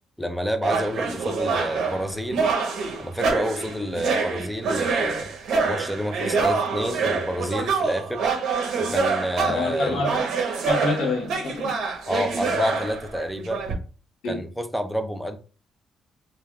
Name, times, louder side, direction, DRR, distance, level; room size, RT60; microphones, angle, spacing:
voice 1, 0.2-2.4 3.0-5.3 5.5-8.2 8.8-10.1 12.1-13.6 14.3-15.4, equal, ahead, 8 dB, 0.4 m, -29 dB
sound 1, 0.6-13.7, right 4 dB, 80° right, 0.8 m, -26 dB
voice 2, 9.4-10.2 10.7-11.7 14.2-14.4, left 3 dB, 85° left, -1 dB, 1.0 m, -27 dB
3.2 x 2.3 x 2.3 m, 0.35 s
cardioid pair, 90°, 0 cm